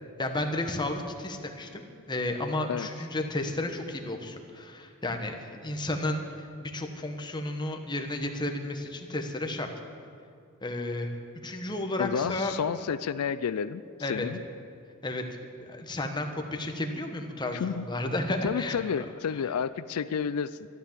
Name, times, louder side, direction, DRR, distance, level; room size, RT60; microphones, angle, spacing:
voice 1, 0.2-9.7 10.6-12.5 14.0-14.2 15.0-15.2 15.6-18.8, left 1 dB, 20° left, 4 dB, 1.2 m, -32 dB
voice 2, 12.0-14.4 17.5-17.9 18.4-20.6, left 7 dB, 90° left, 15 dB, 0.4 m, -30 dB
12.5 x 11.5 x 7.4 m, 2.3 s
head